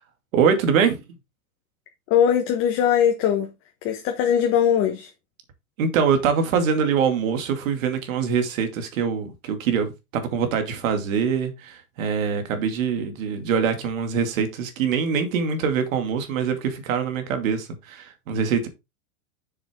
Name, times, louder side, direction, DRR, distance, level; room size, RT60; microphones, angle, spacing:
voice 1, 0.3-1.0 5.8-18.7, right 6 dB, 60° right, 2.5 m, -24 dB
voice 2, 2.1-3.5 3.8-5.1, left 9 dB, 30° left, 1.2 m, -20 dB
7.1 x 6.9 x 3.6 m
supercardioid pair, 155°, 44 cm